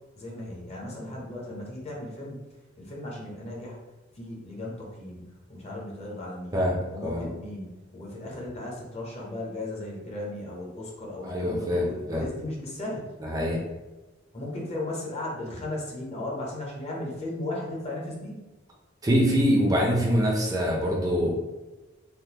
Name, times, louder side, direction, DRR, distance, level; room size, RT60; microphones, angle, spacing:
voice 1, 0.2-2.4 2.8-3.8 4.2-6.6 6.9-13.1 14.3-18.4, left 1 dB, 35° left, -3 dB, 0.7 m, -36 dB
voice 2, 6.5-7.3 11.2-12.3 13.2-13.6 19.0-21.3, equal, 20° right, -2 dB, 0.5 m, -24 dB
3.5 x 2.1 x 2.8 m, 1.1 s
head